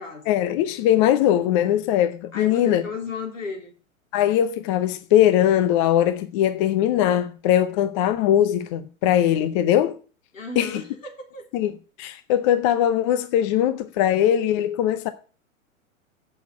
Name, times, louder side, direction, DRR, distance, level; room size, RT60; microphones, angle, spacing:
voice 1, 0.3-2.8 4.1-10.0 10.6-10.8 11.5-11.7 12.0-15.1, left 11 dB, 25° left, 0.5 m, -20 dB
voice 2, 2.3-3.7 10.3-11.5, left 4 dB, 65° left, 3.6 m, -34 dB
8.2 x 6.4 x 7.6 m
figure-of-eight pair, 105°, 41 cm